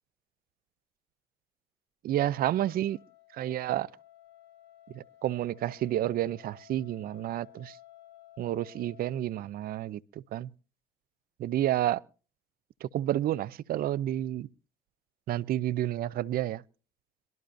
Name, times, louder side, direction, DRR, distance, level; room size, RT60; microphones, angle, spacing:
voice 1, 2.0-3.0 3.3-3.9 4.9-7.8 8.4-10.0 10.3-10.5 11.4-12.0 12.8-14.5 15.3-16.6, right 13 dB, 60° right, 0.5 m, -30 dB
Wind instrument woodwind instrument, 2.3-9.1, left 12 dB, 80° left, 2.9 m, -56 dB
23.5 x 12.0 x 2.6 m
cardioid pair, 110°, 17 cm